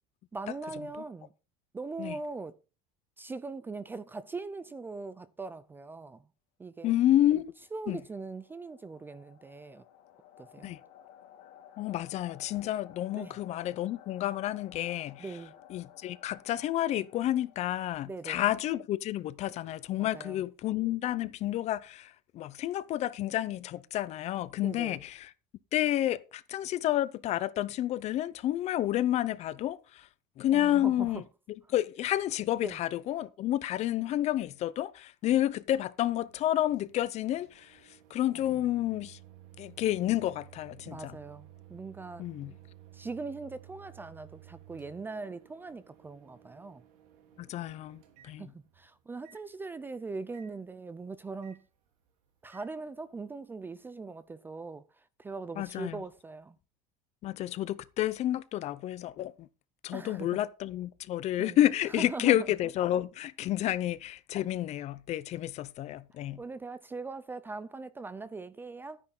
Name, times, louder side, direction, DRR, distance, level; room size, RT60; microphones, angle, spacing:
voice 1, 0.3-1.3 1.7-2.6 3.2-6.2 6.6-6.9 7.7-9.8 10.4-10.7 13.1-13.4 15.2-15.6 18.1-18.4 20.0-20.4 24.6-25.0 30.5-31.2 32.6-32.8 38.5-38.6 40.9-42.2 42.9-46.8 48.4-51.6 52.4-54.8 55.2-56.6 59.9-60.3 61.4-61.6 62.0-62.4 63.6-63.7 66.4-69.0, right 3 dB, 10° right, 0.5 m, -41 dB
voice 2, 6.8-7.5 7.9-8.0 10.6-10.8 11.8-15.3 15.7-25.3 25.7-30.0 30.4-31.2 31.7-37.8 38.1-39.2 39.6-41.2 42.2-42.5 47.4-48.5 55.6-56.0 57.2-59.5 59.8-66.4, left 13 dB, 40° left, 0.7 m, -30 dB
sound 1, 7.5-18.4, left 10 dB, 80° left, 3.1 m, -56 dB
Microwave oven, 36.3-48.8 49.2-49.4 50.3-50.5 51.4-51.6 52.5-52.7, right 12 dB, 80° right, 3.5 m, -55 dB
13.0 x 9.9 x 3.9 m
cardioid pair, 160°, 18 cm